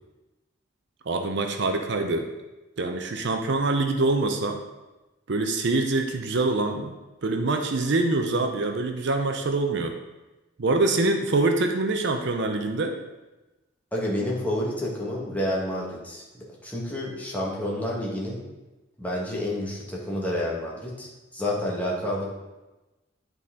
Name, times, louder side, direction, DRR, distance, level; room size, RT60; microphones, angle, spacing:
voice 1, 1.1-2.3 2.8-4.6 5.3-6.9 7.2-10.0 10.6-13.0, right 2 dB, 60° right, 5 dB, 0.6 m, -25 dB
voice 2, 13.9-18.4 19.0-22.3, left 1 dB, 10° left, -5 dB, 1.5 m, -29 dB
11.0 x 4.2 x 3.7 m, 1.1 s
head